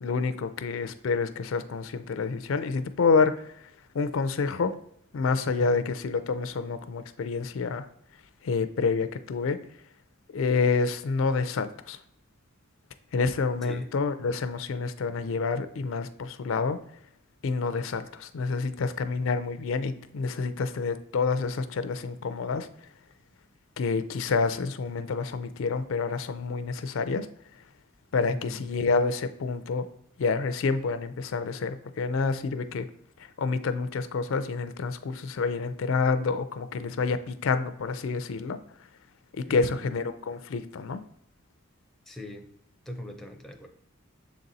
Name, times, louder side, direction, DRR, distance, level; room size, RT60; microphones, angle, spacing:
voice 1, 0.0-3.7 3.9-4.7 5.1-7.9 8.4-9.6 10.3-12.0 13.1-16.8 17.4-22.7 23.8-27.3 28.1-29.8 30.2-32.8 33.4-38.6 39.4-41.0, left 4 dB, 65° left, 11 dB, 0.4 m, -28 dB
voice 2, 5.4-5.8 13.6-13.9 28.3-28.6 39.4-39.8 42.1-42.5 42.9-43.7, left 1 dB, ahead, 4 dB, 0.6 m, -39 dB
6.7 x 4.1 x 3.9 m, 0.71 s
head